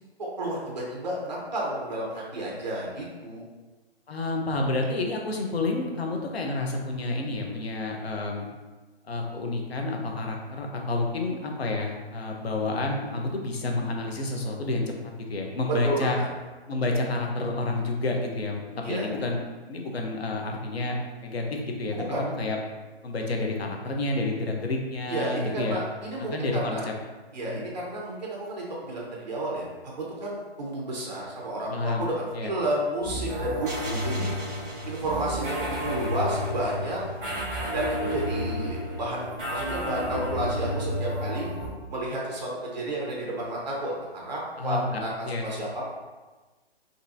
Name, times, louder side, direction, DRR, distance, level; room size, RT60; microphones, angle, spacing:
voice 1, 0.2-3.5 15.8-16.3 18.8-19.1 21.9-22.2 25.1-26.8 27.3-34.3 34.9-37.0 37.7-41.5 41.9-45.1 45.4-45.8, right 1 dB, 40° right, -3 dB, 1.2 m, -31 dB
voice 2, 4.1-8.5 9.1-14.9 15.3-16.2 16.7-18.6 18.9-19.4 19.7-22.6 23.0-25.8 26.3-26.8 27.4-27.6 31.7-32.1 32.3-32.5 44.6-45.5, left 2 dB, 75° left, 1 dB, 1.1 m, -29 dB
sound 1, 33.0-41.7, equal, 5° right, 0.9 m, -31 dB
5.4 x 3.0 x 2.7 m, 1.2 s
hypercardioid pair, 175°, 31 cm